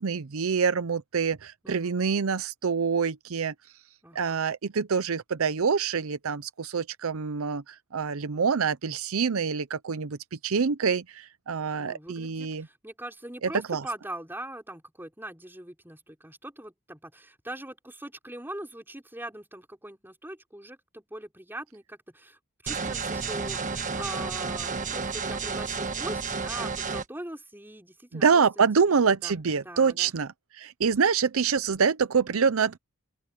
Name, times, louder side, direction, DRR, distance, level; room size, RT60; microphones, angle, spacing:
voice 1, 0.0-3.5 4.1-10.2 10.4-12.7 13.4-13.8 28.1-32.8, right 6 dB, 70° right, 0.6 m, -26 dB
voice 2, 4.0-4.4 11.8-22.4 22.6-28.4 28.9-29.4 29.6-30.1, right 1 dB, 10° right, 4.9 m, -41 dB
sound 1, 22.7-27.0, right 4 dB, 35° right, 1.3 m, -31 dB
open air
head